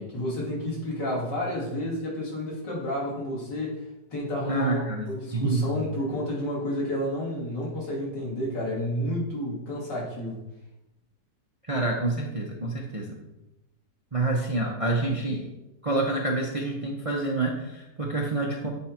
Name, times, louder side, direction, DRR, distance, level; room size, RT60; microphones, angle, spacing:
voice 1, 0.0-3.8 4.1-10.4, left 1 dB, 85° left, -5 dB, 3.2 m, -30 dB
voice 2, 4.5-5.8 11.7-13.2 14.1-15.4 15.8-18.7, right 2 dB, 30° right, 0 dB, 0.6 m, -27 dB
8.4 x 4.6 x 4.3 m, 0.95 s
omnidirectional pair, 1.8 m